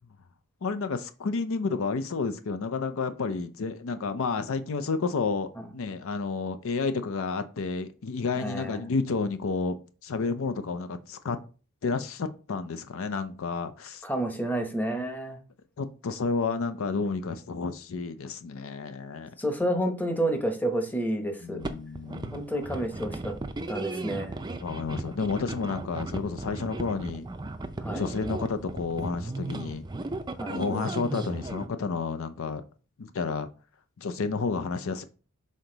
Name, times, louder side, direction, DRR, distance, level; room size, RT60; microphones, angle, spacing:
voice 1, 0.6-5.5 5.7-9.8 10.0-11.4 11.8-14.0 15.8-19.3 21.4-22.5 24.6-27.3 27.9-29.8 30.5-32.6 33.0-33.5 34.0-35.0, left 4 dB, 65° left, 10 dB, 0.5 m, -30 dB
voice 2, 8.4-8.9 14.0-15.4 19.4-21.6 22.3-23.3 23.7-24.4 27.8-28.1 30.4-30.6, right 1 dB, 10° left, 4 dB, 0.9 m, -30 dB
sound 1, 21.6-31.7, right 2 dB, 20° right, 0.5 m, -36 dB
6.3 x 3.9 x 3.9 m, 0.36 s
head